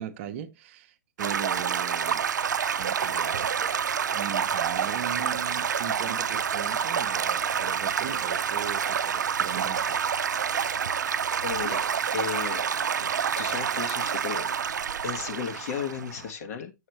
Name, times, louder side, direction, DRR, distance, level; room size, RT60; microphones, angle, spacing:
voice 1, 0.0-2.3 2.7-3.5 4.1-10.0, right 9 dB, 40° right, 0.8 m, -38 dB
Stream / Gurgling / Trickle dribble, 1.2-16.3, right 7 dB, 70° right, 0.5 m, -28 dB
voice 2, 11.4-11.9 12.1-12.7 13.4-16.7, left 7 dB, 50° left, 1.5 m, -34 dB
7.7 x 6.4 x 3.1 m
hypercardioid pair, 130°, 10 cm